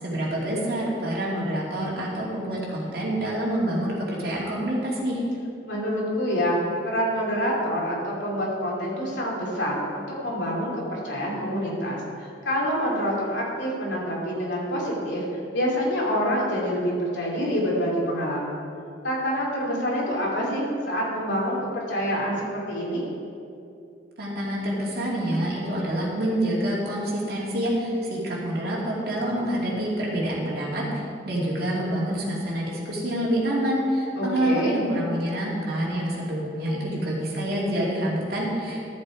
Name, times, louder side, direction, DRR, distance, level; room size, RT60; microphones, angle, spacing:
voice 1, 0.0-5.2 24.2-38.9, right 1 dB, 60° right, -5 dB, 2.6 m, -27 dB
voice 2, 5.7-6.6 6.8-15.2 15.5-18.6 19.0-23.0 34.2-34.7, equal, 85° left, -4 dB, 3.0 m, -27 dB
13.0 x 7.4 x 4.8 m, 2.5 s
head